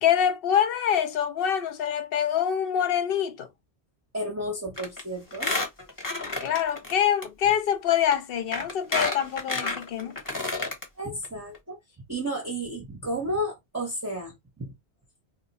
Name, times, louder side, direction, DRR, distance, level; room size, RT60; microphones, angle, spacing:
voice 1, 0.0-3.5 6.4-10.1, left 9 dB, 70° left, 0.8 m, -25 dB
voice 2, 4.1-5.5 11.0-11.8 12.1-14.7, right 1 dB, 20° right, 0.6 m, -32 dB
Squeak, 4.8-5.0 5.3-6.9 7.2-7.3 8.1-8.2 8.5-10.8 11.2-11.3 11.5-11.6, left 2 dB, 20° left, 0.8 m, -30 dB
2.5 x 2.1 x 4.0 m
omnidirectional pair, 1.1 m